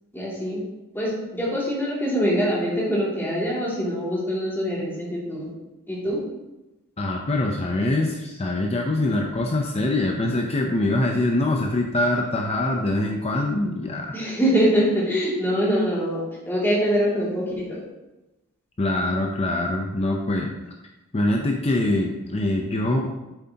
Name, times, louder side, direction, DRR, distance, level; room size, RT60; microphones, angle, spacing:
voice 1, 0.1-0.6 0.9-5.5 5.9-6.2 14.1-17.8, equal, 10° left, -7 dB, 2.6 m, -24 dB
voice 2, 7.0-14.2 18.8-20.5 21.1-23.1, left 1 dB, 30° left, 1 dB, 0.6 m, -24 dB
7.9 x 7.4 x 2.9 m, 1.0 s
head